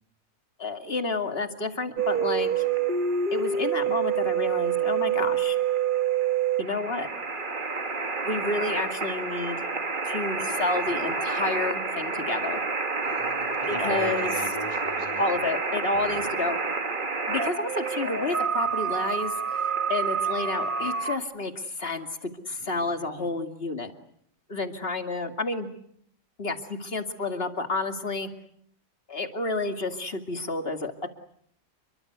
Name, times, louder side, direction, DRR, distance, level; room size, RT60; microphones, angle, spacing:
voice 1, 0.6-2.6 3.3-5.6 6.6-7.1 8.2-9.6 10.0-12.6 13.7-14.3 15.2-16.6 17.3-23.9 24.5-25.7 26.4-28.3 29.1-31.1, left 2 dB, 45° left, 6 dB, 2.6 m, -30 dB
sound 1, 2.0-21.2, right 6 dB, 40° right, 1.7 m, -28 dB
voice 2, 13.0-15.2 15.9-16.2 22.6-23.3, left 1 dB, 20° left, 7 dB, 4.7 m, -37 dB
29.5 x 23.5 x 8.1 m, 0.69 s
omnidirectional pair, 1.4 m